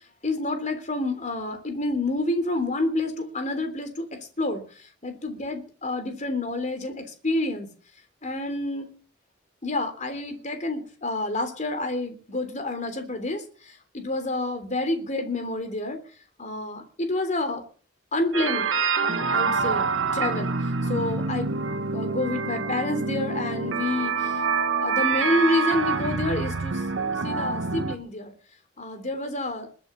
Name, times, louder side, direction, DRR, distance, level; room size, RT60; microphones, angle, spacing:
voice 1, 0.2-7.7 8.2-8.9 9.6-16.0 16.4-17.6 18.1-18.7 19.0-21.6 21.9-24.4 24.8-26.8 27.2-28.3 28.8-29.7, left 2 dB, 40° left, 7 dB, 3.4 m, -29 dB
sound 1, 18.3-28.0, right 4 dB, 75° right, 1.5 m, -26 dB
21.5 x 7.8 x 6.9 m, 0.40 s
head